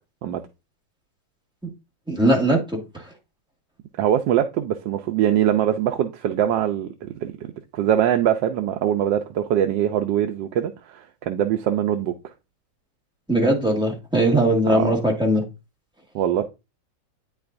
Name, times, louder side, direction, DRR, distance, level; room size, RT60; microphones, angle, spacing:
voice 1, 2.1-2.8 13.3-15.4, right 1 dB, 5° right, 1.5 m, -20 dB
voice 2, 4.0-7.3 7.7-12.1 14.7-15.0 16.1-16.4, right 10 dB, 85° right, 1.3 m, -22 dB
9.1 x 4.7 x 2.5 m
omnidirectional pair, 2.0 m